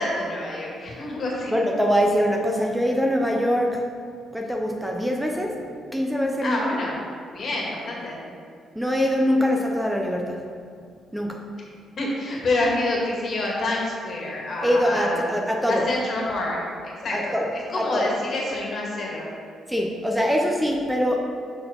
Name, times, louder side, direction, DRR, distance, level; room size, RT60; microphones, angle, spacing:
voice 1, 0.0-1.5 6.4-7.0 7.3-8.2 12.0-15.4 15.7-19.3, left 2 dB, 55° left, -2 dB, 1.7 m, -27 dB
voice 2, 1.5-3.9 4.3-5.5 5.9-6.7 8.8-10.4 11.1-11.4 14.6-15.9 17.1-17.5 17.8-18.1 19.7-21.2, equal, 5° right, 0 dB, 0.6 m, -23 dB
5.9 x 4.7 x 5.2 m, 2.3 s
cardioid pair, 90°, 0 cm